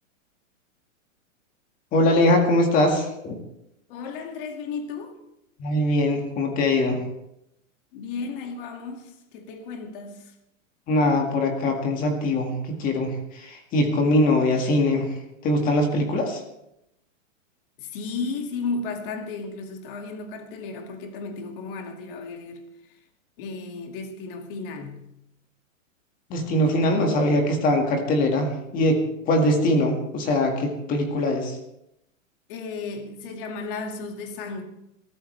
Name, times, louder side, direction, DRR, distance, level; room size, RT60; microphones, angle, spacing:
voice 1, 1.9-3.4 5.6-7.0 10.9-16.4 26.3-31.6, left 1 dB, 20° left, 1.9 m, -22 dB
voice 2, 3.9-5.2 7.9-10.3 17.8-23.0 23.4-25.2 32.5-34.6, left 4 dB, 40° left, 2.2 m, -34 dB
22.0 x 13.5 x 3.3 m
supercardioid pair, 165°, 39 cm